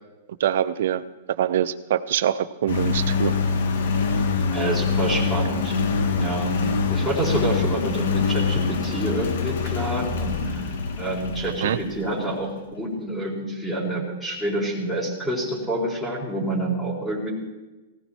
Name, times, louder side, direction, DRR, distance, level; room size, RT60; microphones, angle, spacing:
voice 1, 0.4-1.0 1.4-3.3 11.6-11.8, right 10 dB, 70° right, 14 dB, 0.9 m, -24 dB
Engine, 2.7-12.1, left 5 dB, 75° left, 2.4 m, -25 dB
voice 2, 4.5-5.8 6.2-6.6 6.9-10.7 11.0-17.3, right 1 dB, 5° left, -5 dB, 4.4 m, -27 dB
18.0 x 16.5 x 4.6 m, 1.1 s
hypercardioid pair, 145°, 0 cm